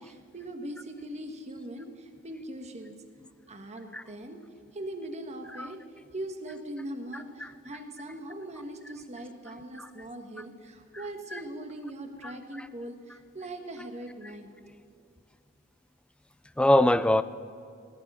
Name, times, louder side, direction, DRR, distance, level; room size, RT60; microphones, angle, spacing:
voice 1, 0.0-2.9 3.5-4.4 4.7-5.8 6.1-14.5, right 1 dB, 30° right, 1.3 m, -40 dB
voice 2, 16.6-17.2, left 1 dB, 5° left, 0.3 m, -23 dB
18.5 x 12.0 x 5.5 m
head